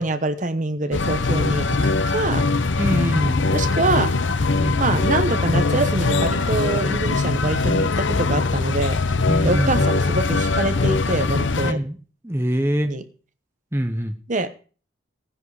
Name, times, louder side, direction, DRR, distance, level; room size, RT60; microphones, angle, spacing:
voice 1, 0.0-2.4 3.5-4.1 4.8-9.0 9.4-11.8 12.8-13.0 14.3-14.5, right 2 dB, 40° right, 11 dB, 1.0 m, -25 dB
sound 1, 0.9-11.7, left 3 dB, 65° left, 0.7 m, -21 dB
voice 2, 2.8-3.5 4.6-5.0 9.3-9.8 11.6-12.0 12.2-12.9 13.7-14.2, equal, 10° right, 7 dB, 0.8 m, -24 dB
16.0 x 10.0 x 4.9 m, 0.40 s
head